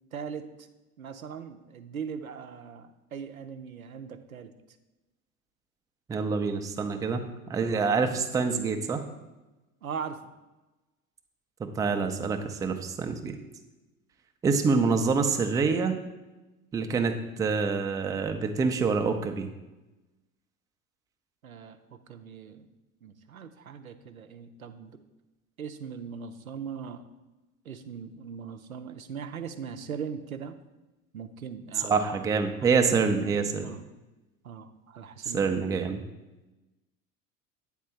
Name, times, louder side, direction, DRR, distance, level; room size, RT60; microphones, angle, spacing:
voice 1, 0.1-0.5 1.0-4.5 9.8-10.2 21.4-22.7 23.0-25.0 25.6-27.0 27.7-30.6 31.1-31.9 32.6-32.8 33.6-33.8 34.4-35.4, right 7 dB, 90° right, 9 dB, 0.5 m, -40 dB
voice 2, 6.1-9.0 11.6-13.4 14.4-16.0 16.7-19.5 31.8-33.7 35.2-36.0, right 5 dB, 10° right, 5 dB, 0.4 m, -26 dB
8.3 x 3.7 x 4.3 m, 1.1 s
figure-of-eight pair, 70°, 41 cm